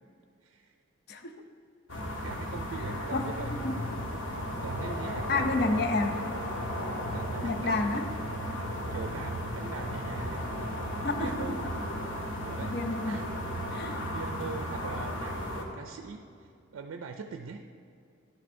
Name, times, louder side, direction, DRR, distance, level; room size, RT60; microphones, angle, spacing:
voice 1, 0.4-0.8 2.2-3.9 4.6-5.7 7.1-8.0 8.9-10.4 11.2-11.7 12.4-12.8 13.0-13.6 14.1-17.6, right 5 dB, 90° right, 6 dB, 0.4 m, -42 dB
voice 2, 1.1-1.4 3.1-3.8 5.3-6.3 7.4-8.1 11.0-11.7 12.6-13.2 13.7-14.0, left 3 dB, 55° left, 6 dB, 0.5 m, -30 dB
sound 1, 1.9-15.7, equal, 70° left, 1.0 m, -35 dB
11.0 x 7.4 x 2.6 m, 2.5 s
head